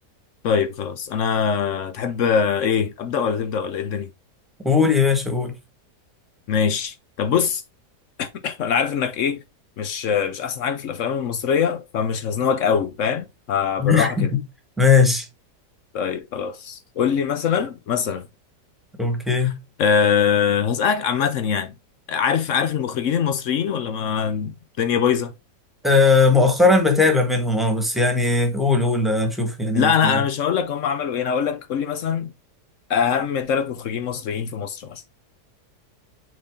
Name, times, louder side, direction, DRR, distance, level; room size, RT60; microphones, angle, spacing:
voice 1, 0.4-4.1 6.5-7.6 8.2-9.4 9.8-14.3 15.9-18.3 19.4-19.5 19.8-21.7 22.1-25.3 29.7-32.3 32.9-35.0, left 7 dB, 60° left, 0.8 m, -23 dB
voice 2, 4.6-5.5 13.8-14.3 14.8-15.2 19.0-19.5 25.8-30.2, left 4 dB, ahead, 1.2 m, -18 dB
6.3 x 4.2 x 3.6 m
omnidirectional pair, 1.8 m